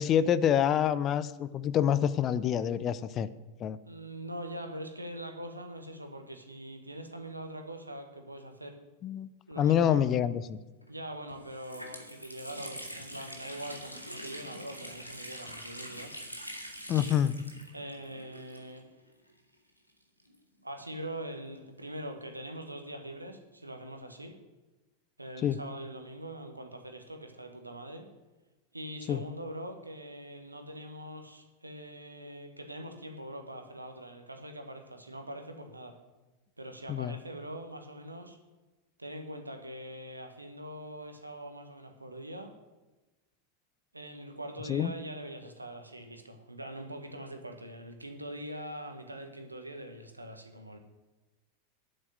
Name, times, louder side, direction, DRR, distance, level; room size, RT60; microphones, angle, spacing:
voice 1, 0.0-3.3 3.6-3.8 9.0-9.3 9.6-10.6 16.9-17.3 25.4-25.6 29.1-29.2 36.9-37.1 44.7-44.9, left 9 dB, 30° left, 15 dB, 0.6 m, -27 dB
voice 2, 3.9-8.8 9.5-10.0 10.9-16.1 17.7-18.9 20.6-24.3 25.2-28.1 28.7-36.0 36.6-38.4 39.0-42.5 43.9-50.8, right 1 dB, 85° right, 5 dB, 1.4 m, -43 dB
Water tap faucet, 10.8-10.9 11.3-19.0 19.3-19.4 20.2-21.8, equal, 90° left, 2.0 m, -45 dB
8.8 x 7.8 x 9.2 m, 1.1 s
figure-of-eight pair, 90°, 0 cm